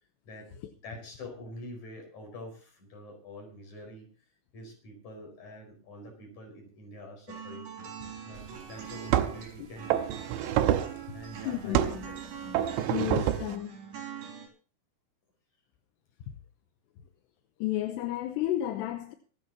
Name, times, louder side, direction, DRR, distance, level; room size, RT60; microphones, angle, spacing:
voice 1, 0.8-4.1 4.5-7.7 8.3-10.1 11.1-12.2 12.9-13.3, left 1 dB, 40° left, 6.1 m, -46 dB
sound 1, 7.3-14.5, right 6 dB, 50° right, 5.0 m, -43 dB
sound 2, 8.4-8.5 9.1-9.5 9.9-11.0 11.7-12.1 12.5-13.6, right 11 dB, 80° right, 3.2 m, -27 dB
voice 2, 11.5-11.9 12.9-13.8 17.6-19.1, left 13 dB, 75° left, 2.8 m, -32 dB
25.0 x 11.0 x 2.9 m
omnidirectional pair, 5.6 m